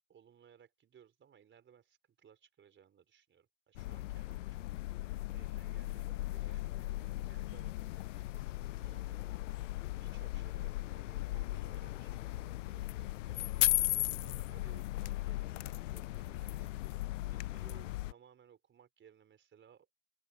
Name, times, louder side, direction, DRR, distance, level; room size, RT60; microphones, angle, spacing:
voice 1, 0.1-4.7 5.0-9.2 9.5-19.9, right 8 dB, 25° right, 4.9 m, -62 dB
sound 1, 3.8-18.1, left 17 dB, 60° left, 0.8 m, -37 dB
open air
figure-of-eight pair, 85°, 42 cm